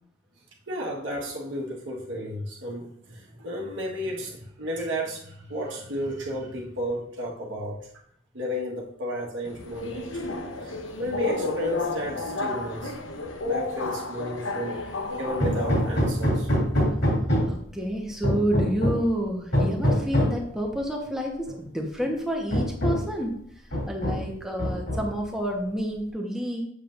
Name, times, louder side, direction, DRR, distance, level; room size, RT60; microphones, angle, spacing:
voice 1, 0.7-8.0 8.3-10.2 10.6-10.7 11.0-12.9 13.4-16.5 17.5-17.6, equal, 70° right, -3 dB, 1.3 m, -33 dB
Subway metro underground, 9.4-16.2, left 2 dB, 90° left, 0.9 m, -31 dB
Hammer, 15.4-17.7 18.2-19.1 19.5-20.4 21.5-21.6 22.0-22.1 22.5-23.2 23.7-24.3 24.6-25.3, equal, 60° left, 2.7 m, -24 dB
voice 2, 17.5-23.4 23.9-26.6, equal, 5° right, 0 dB, 1.1 m, -29 dB
7.6 x 7.1 x 2.5 m, 0.67 s
head